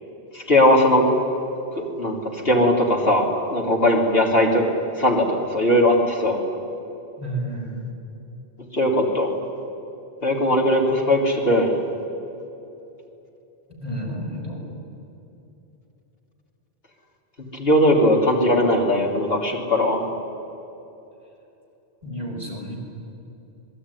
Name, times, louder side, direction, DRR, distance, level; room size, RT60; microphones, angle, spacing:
voice 1, 0.3-1.1 1.7-4.6 5.0-6.4 8.7-9.3 10.2-11.8 17.5-20.0, left 1 dB, 60° left, 0 dB, 3.7 m, -19 dB
voice 2, 7.2-7.8 13.8-14.7 22.0-22.8, right 1 dB, 35° right, -2 dB, 6.4 m, -31 dB
26.5 x 21.5 x 9.9 m, 2.9 s
omnidirectional pair, 1.1 m